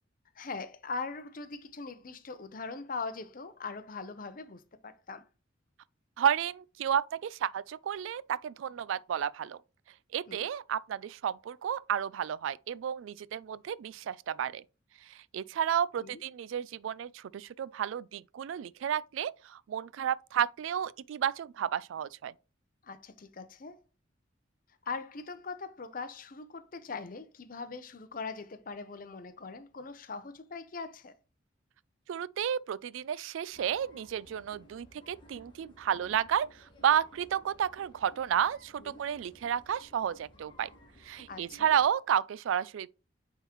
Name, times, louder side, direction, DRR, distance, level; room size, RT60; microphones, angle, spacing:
voice 1, 0.3-5.3 10.3-10.5 16.0-16.2 22.8-23.8 24.8-31.1 38.8-39.0 41.3-41.7, left 4 dB, 45° left, 0.6 m, -41 dB
voice 2, 6.2-9.6 10.1-14.6 15.0-22.3 32.1-40.7 41.0-42.9, right 9 dB, 90° right, 0.3 m, -32 dB
sound 1, 33.5-41.9, left 1 dB, 25° left, 1.5 m, -58 dB
9.0 x 3.7 x 3.0 m
head